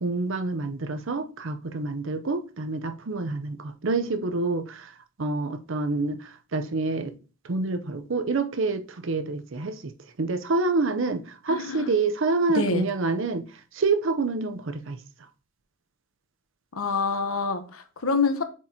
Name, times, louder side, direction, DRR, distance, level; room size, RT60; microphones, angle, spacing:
voice 1, 0.0-4.9 5.2-6.2 6.5-7.1 7.4-9.8 10.2-13.4 13.7-15.0, right 3 dB, 65° right, 0.7 m, -27 dB
voice 2, 11.5-11.9 12.5-12.9 16.7-18.4, left 4 dB, 85° left, 1.0 m, -26 dB
7.4 x 4.6 x 2.8 m
head